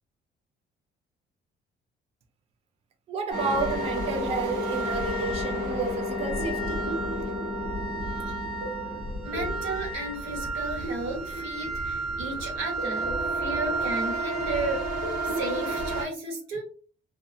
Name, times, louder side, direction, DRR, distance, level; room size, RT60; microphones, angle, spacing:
voice 1, 3.1-6.8, right 5 dB, 30° right, 0.4 m, -31 dB
sound 1, 3.3-16.0, right 1 dB, 50° right, 1.4 m, -30 dB
voice 2, 9.2-16.6, right 2 dB, 90° right, 1.4 m, -34 dB
2.5 x 2.1 x 2.7 m
cardioid pair, 140°, 20 cm